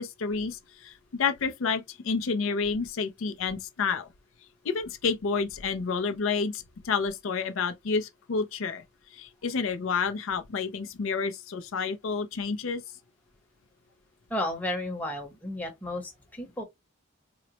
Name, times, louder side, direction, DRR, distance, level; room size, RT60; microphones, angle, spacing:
voice 1, 0.0-4.1 4.6-8.8 9.1-12.8, left 5 dB, 70° left, 0.5 m, -29 dB
voice 2, 14.3-16.6, left 1 dB, 5° left, 0.8 m, -33 dB
3.8 x 2.0 x 2.9 m
head